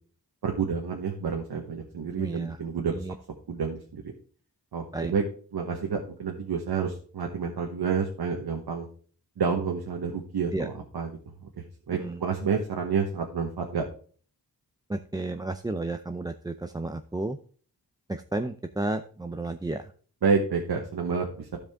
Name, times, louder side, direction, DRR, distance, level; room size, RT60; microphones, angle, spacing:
voice 1, 0.4-3.1 3.5-4.0 4.7-5.2 5.5-8.9 9.4-11.1 11.6-13.8 20.2-21.6, right 5 dB, 80° right, 2 dB, 1.2 m, -29 dB
voice 2, 2.2-2.6 2.9-3.1 4.9-5.1 10.5-10.7 11.9-12.2 14.9-17.4 18.1-19.9, right 2 dB, 10° right, 7 dB, 0.4 m, -32 dB
12.5 x 5.2 x 3.5 m, 0.43 s
wide cardioid pair, 75°, 38 cm